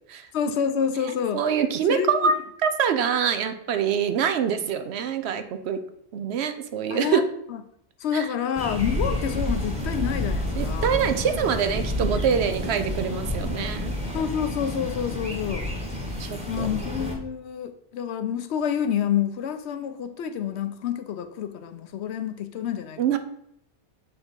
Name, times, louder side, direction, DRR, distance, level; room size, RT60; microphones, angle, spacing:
voice 1, 0.3-1.4 1.9-2.3 6.9-7.2 7.5-7.6 8.0-11.0 14.1-15.7 16.5-23.0, left 8 dB, 75° left, 10 dB, 0.9 m, -28 dB
voice 2, 1.3-5.8 6.1-7.2 8.1-8.3 10.6-13.9 16.0-16.7 23.0-23.2, right 7 dB, 75° right, 9 dB, 0.9 m, -25 dB
sound 1, 8.5-17.1, left 1 dB, 5° right, 1.1 m, -29 dB
6.4 x 3.9 x 4.4 m, 0.73 s
omnidirectional pair, 1.1 m